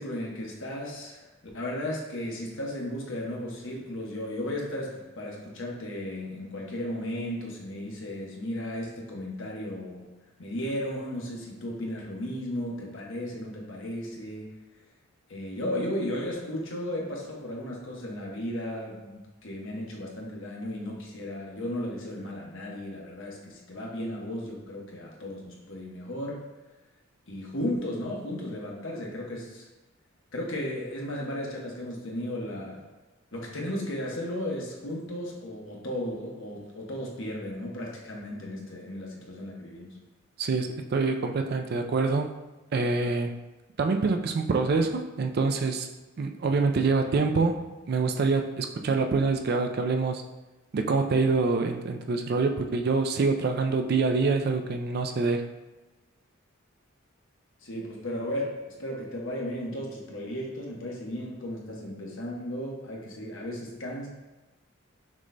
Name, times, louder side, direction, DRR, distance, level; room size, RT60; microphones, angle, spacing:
voice 1, 0.0-10.1 10.4-14.5 15.3-26.4 27.3-29.7 30.3-32.8 33.3-39.9 57.6-64.1, left 1 dB, 60° left, -2 dB, 1.1 m, -35 dB
voice 2, 40.4-42.3 42.7-43.4 43.8-45.9 46.2-47.6 47.9-50.2 50.7-55.4, right 4 dB, 50° right, 5 dB, 0.4 m, -25 dB
6.1 x 3.9 x 2.2 m, 1.1 s
head